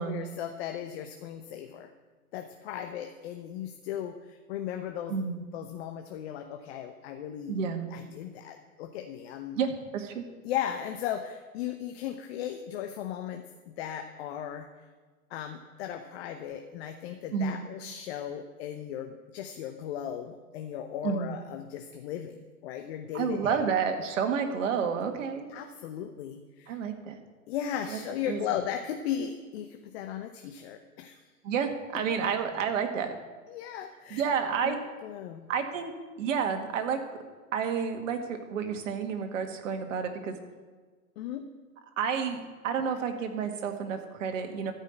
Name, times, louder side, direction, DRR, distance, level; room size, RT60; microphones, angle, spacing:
voice 1, 0.0-1.9 2.3-5.2 5.5-7.6 7.9-9.6 10.4-14.7 15.3-22.4 22.6-23.6 25.5-26.8 27.5-31.2 33.5-34.3 34.6-35.5 41.2-41.4, left 10 dB, 45° left, 5 dB, 1.0 m, -36 dB
voice 2, 5.1-5.4 7.5-7.9 9.6-10.2 17.3-17.6 21.0-21.4 23.1-25.5 26.7-27.2 27.9-28.0 28.3-28.4 31.4-33.1 34.1-34.8 35.5-35.9 36.2-37.0 37.5-40.4 42.0-44.7, right 6 dB, 60° right, 5 dB, 1.9 m, -30 dB
13.5 x 5.6 x 8.6 m, 1.4 s
hypercardioid pair, 110°, 43 cm